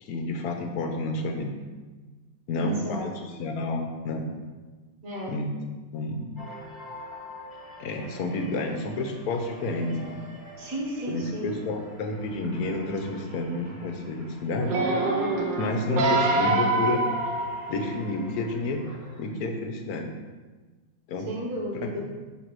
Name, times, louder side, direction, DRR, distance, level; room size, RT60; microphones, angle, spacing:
voice 1, 0.0-1.5 2.5-4.2 5.3-5.5 5.9-6.3 7.8-10.2 11.1-14.8 15.6-17.0 17.7-18.8 19.2-20.1 21.1-21.3 21.8-22.1, left 2 dB, 60° left, 4 dB, 1.2 m, -30 dB
voice 2, 2.5-3.1 5.0-5.4 10.6-11.6 21.3-22.1, right 1 dB, 55° right, -3 dB, 1.9 m, -33 dB
sound 1, 6.3-19.2, left 1 dB, 15° left, 1.5 m, -46 dB
sound 2, 14.6-18.1 18.8-18.9, right 2 dB, 75° right, 1.6 m, -25 dB
7.5 x 3.3 x 6.2 m, 1.3 s
omnidirectional pair, 2.0 m